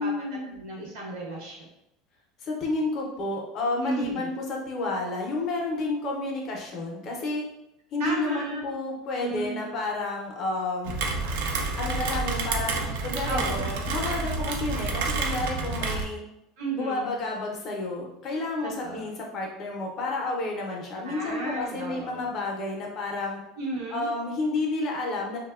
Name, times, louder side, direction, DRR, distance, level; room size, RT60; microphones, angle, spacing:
voice 1, 0.0-0.5 2.4-7.4 7.9-11.0 11.8-13.6 13.9-16.2 16.8-23.4 23.9-25.4, left 2 dB, 30° left, 0 dB, 0.4 m, -30 dB
voice 2, 0.5-1.7 3.8-4.4 8.0-8.6 9.2-9.6 13.3-13.9 16.6-17.1 18.6-19.1 21.0-22.3 23.6-24.1, right 2 dB, 65° right, -3 dB, 0.9 m, -34 dB
Rain, 10.8-16.0, right 3 dB, 85° right, 0.3 m, -29 dB
2.9 x 2.0 x 2.2 m, 0.84 s
cardioid pair, 175°, 0 cm